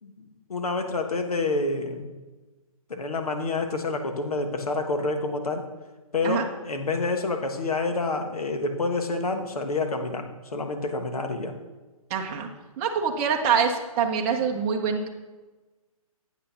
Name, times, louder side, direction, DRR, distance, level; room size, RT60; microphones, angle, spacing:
voice 1, 0.0-2.1 2.9-5.7 6.1-10.3 10.5-11.5, left 3 dB, 80° left, 5 dB, 1.3 m, -28 dB
voice 2, 12.1-15.1, right 6 dB, 20° right, 2 dB, 0.8 m, -25 dB
8.2 x 5.9 x 5.7 m, 1.2 s
hypercardioid pair, 145°, 19 cm